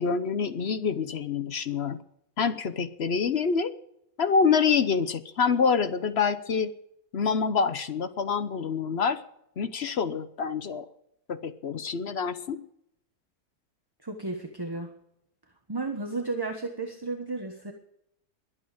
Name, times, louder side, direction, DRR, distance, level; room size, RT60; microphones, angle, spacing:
voice 1, 0.0-2.0 2.4-3.7 4.2-6.7 7.1-9.2 9.6-10.9 11.3-12.6, left 5 dB, 50° left, 12 dB, 0.9 m, -26 dB
voice 2, 14.0-14.9 15.7-17.7, right 3 dB, 15° right, 4 dB, 1.1 m, -33 dB
22.0 x 8.7 x 5.0 m, 0.76 s
omnidirectional pair, 1.6 m